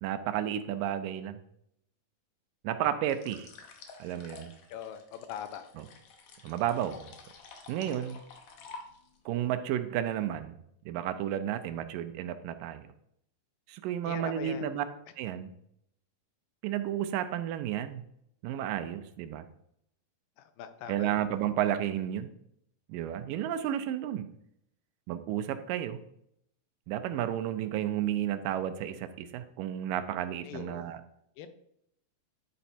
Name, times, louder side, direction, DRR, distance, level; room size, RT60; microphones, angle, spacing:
voice 1, 0.0-1.4 2.6-3.5 4.0-4.5 5.8-5.9 6.4-7.1 7.7-8.2 9.3-10.5 10.9-12.9 13.7-14.9 15.2-15.5 16.6-18.0 18.4-19.5 20.9-22.3 22.9-24.3 25.1-26.0 26.9-31.0, right 11 dB, 85° right, 10 dB, 2.2 m, -32 dB
sound 1, 3.0-9.3, left 4 dB, 65° left, 2.0 m, -50 dB
voice 2, 4.7-5.7 14.1-14.6 20.6-21.1 30.5-30.9 31.4-31.5, left 9 dB, 85° left, 9 dB, 2.5 m, -41 dB
10.0 x 4.4 x 4.2 m, 0.75 s
omnidirectional pair, 3.9 m